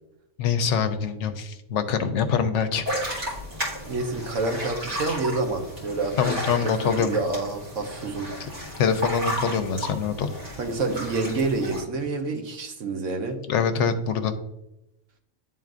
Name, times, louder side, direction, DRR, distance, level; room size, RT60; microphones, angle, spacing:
voice 1, 0.4-2.8 6.2-7.1 8.4-8.5 8.8-10.3 13.5-14.3, left 6 dB, 75° left, 9 dB, 0.9 m, -24 dB
sound 1, 2.9-11.8, equal, 45° right, 2.3 m, -33 dB
voice 2, 3.9-8.3 10.6-13.4, right 3 dB, 85° right, 4 dB, 1.2 m, -28 dB
10.5 x 3.8 x 2.5 m, 0.88 s
omnidirectional pair, 1.3 m